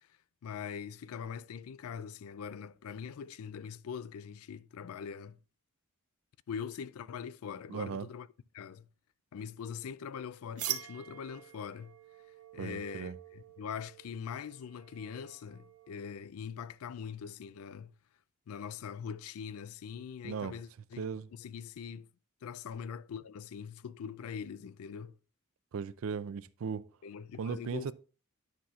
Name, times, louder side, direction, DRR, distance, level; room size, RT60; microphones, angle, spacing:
voice 1, 0.4-5.4 6.5-8.3 8.5-8.9 9.3-11.9 12.5-17.9 18.5-21.0 21.3-22.1 22.4-25.1 27.0-27.9, left 7 dB, 80° left, 0.4 m, -42 dB
voice 2, 7.7-8.1 12.6-13.2 20.2-20.6 21.0-21.3 25.7-26.9 27.4-27.9, right 6 dB, 65° right, 0.4 m, -37 dB
sound 1, 10.6-16.1, right 11 dB, 85° right, 0.8 m, -44 dB
10.5 x 5.6 x 2.4 m
head